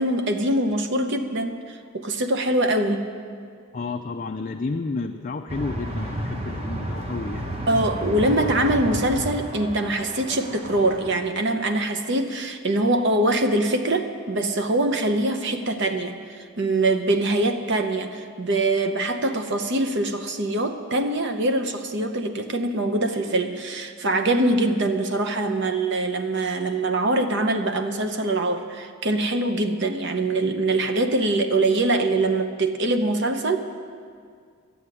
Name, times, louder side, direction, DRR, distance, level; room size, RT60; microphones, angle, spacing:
voice 1, 0.0-3.1 7.7-33.6, right 2 dB, 55° right, 7 dB, 0.9 m, -23 dB
voice 2, 3.7-7.6, left 3 dB, 35° left, 4 dB, 0.4 m, -31 dB
sound 1, 5.5-11.1, right 1 dB, 30° right, 1.1 m, -32 dB
12.0 x 7.8 x 9.8 m, 2.1 s
head